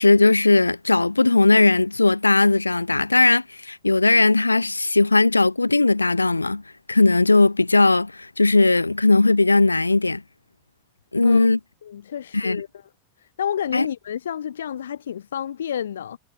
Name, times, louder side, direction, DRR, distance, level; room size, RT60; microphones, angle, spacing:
voice 1, 0.0-6.6 6.9-10.2 11.1-11.6 12.3-12.6 13.7-13.9, left 3 dB, 80° left, 0.9 m, -18 dB
voice 2, 11.8-12.7 13.4-16.2, left 9 dB, 65° left, 1.4 m, -29 dB
figure-of-eight pair, 90°, 0 cm